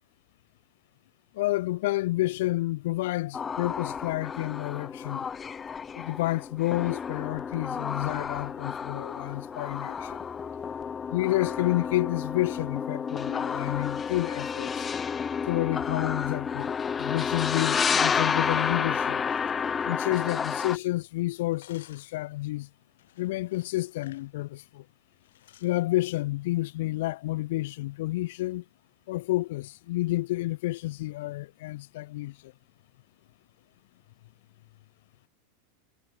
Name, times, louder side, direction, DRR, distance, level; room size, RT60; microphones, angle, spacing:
voice 1, 1.3-5.3 5.9-10.2 11.1-14.9 15.5-16.7 17.0-19.2 19.8-22.7 23.2-24.8 25.6-28.6 29.1-32.5, left 18 dB, 55° left, 0.9 m, -30 dB
sound 1, 3.3-20.8, left 6 dB, 15° left, 1.2 m, -31 dB
sound 2, 19.2-21.0 21.3-22.2 23.0-24.3 24.6-24.8 25.2-25.8, left 13 dB, 90° left, 7.8 m, -57 dB
supercardioid pair, 175°, 0 cm